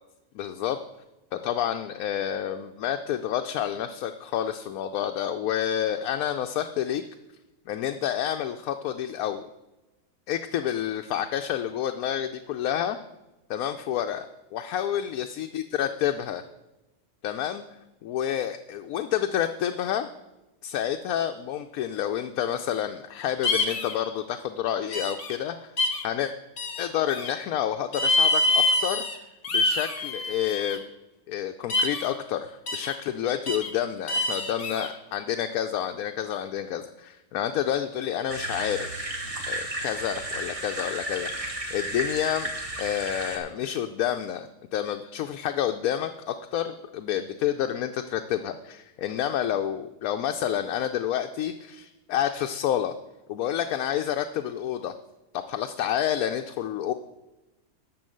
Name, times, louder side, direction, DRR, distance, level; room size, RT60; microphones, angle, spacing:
voice 1, 0.3-0.8 1.3-7.0 7.7-9.5 10.3-13.0 13.5-14.3 14.5-16.4 17.2-17.6 18.0-20.1 20.6-25.7 26.0-26.3 26.8-29.1 29.5-30.8 31.3-39.1 39.5-42.5 42.8-52.9 53.3-55.0 55.5-56.9, left 10 dB, 85° left, 6 dB, 1.0 m, -29 dB
sound 1, 23.4-24.0 24.9-25.4 25.8-26.0 26.6-27.3 27.9-29.2 29.4-30.8 31.7-32.1 32.7-32.9 33.5-33.7 34.1-34.9, left 2 dB, 60° left, 1.5 m, -26 dB
sound 2, 38.3-43.4, right 1 dB, 25° right, 1.4 m, -33 dB
11.5 x 4.4 x 7.7 m, 1.0 s
omnidirectional pair, 1.5 m